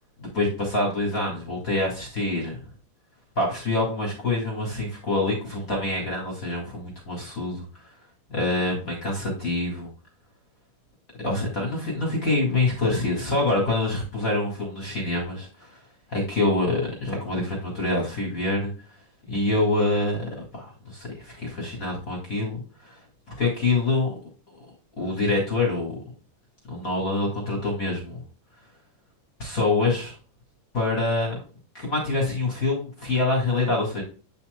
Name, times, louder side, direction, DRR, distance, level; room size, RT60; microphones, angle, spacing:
voice 1, 0.2-2.6 3.4-7.7 8.3-9.9 11.2-15.8 16.1-18.7 19.3-23.0 23.4-24.1 24.6-24.7 25.0-26.0 26.7-28.2 29.4-30.1 30.7-31.4 31.7-34.0, left 2 dB, 30° left, -1 dB, 1.9 m, -26 dB
8.3 x 5.8 x 2.2 m, 0.36 s
omnidirectional pair, 3.8 m